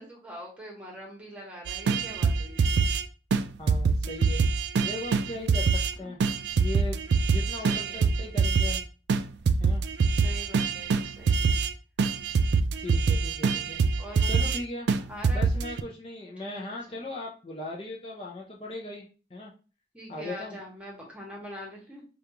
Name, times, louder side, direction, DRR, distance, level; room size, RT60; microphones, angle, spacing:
voice 1, 0.0-2.6 6.0-6.1 7.7-8.1 10.1-11.6 14.0-14.5 15.1-15.6 16.4-17.0 19.9-22.0, equal, 5° right, -3 dB, 1.2 m, -43 dB
sound 1, 1.7-3.0 3.3-3.4 3.7-5.9 6.2-8.8 9.1-9.2 9.5-11.7 12.0-14.6 14.9-15.0 15.2-15.8, right 5 dB, 75° right, 0.3 m, -24 dB
voice 2, 3.6-6.2 6.5-7.0 7.3-8.8 9.6-9.8 12.8-14.9 15.3-19.1 19.3-19.5 20.1-20.6, left 2 dB, 30° left, -2 dB, 0.6 m, -38 dB
5.0 x 2.4 x 2.9 m, 0.35 s
head